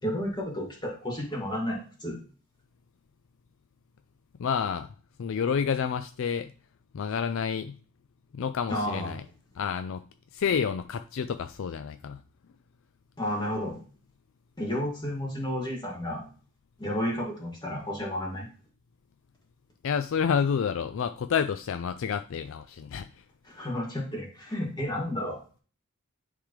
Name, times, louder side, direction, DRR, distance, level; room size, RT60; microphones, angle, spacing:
voice 1, 0.0-2.2 8.7-9.2 13.2-13.8 14.6-16.3 16.8-18.5 23.5-25.4, left 1 dB, 20° left, 2.2 m, -32 dB
voice 2, 4.4-4.9 5.2-6.5 6.9-7.8 8.3-9.2 9.5-10.1 10.3-12.2 19.8-23.2, left 7 dB, 65° left, 0.4 m, -29 dB
10.0 x 3.7 x 3.3 m
head